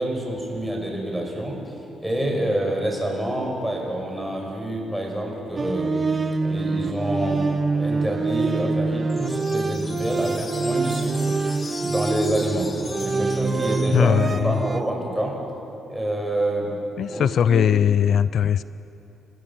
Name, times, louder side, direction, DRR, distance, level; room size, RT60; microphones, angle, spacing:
voice 1, 0.0-1.6 2.0-6.0 6.4-7.4 7.7-11.3 11.8-12.7 13.0-15.3 15.9-16.7 17.1-17.7, right 1 dB, 5° right, 0 dB, 5.6 m, -27 dB
sound 1, 5.6-14.8, right 3 dB, 30° right, 0.9 m, -25 dB
sound 2, 9.1-14.6, left 4 dB, 35° left, 1.1 m, -39 dB
voice 2, 13.9-14.6 17.0-18.6, left 8 dB, 60° left, 16 dB, 0.4 m, -20 dB
29.0 x 15.5 x 7.3 m, 3.0 s
cardioid pair, 90°, 0 cm